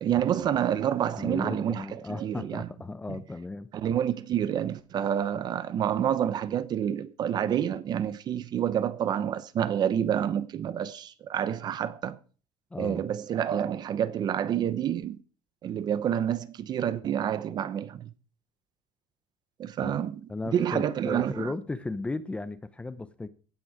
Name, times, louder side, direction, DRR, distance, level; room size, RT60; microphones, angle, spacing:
voice 1, 0.0-2.7 3.7-12.2 12.8-15.2 15.6-18.1 19.6-21.5, right 9 dB, 40° right, 0.8 m, -28 dB
voice 2, 1.2-3.7 12.7-13.0 19.8-20.0 20.3-23.3, left 3 dB, 10° left, 0.7 m, -35 dB
16.5 x 9.4 x 4.9 m
cardioid pair, 170°, 11 cm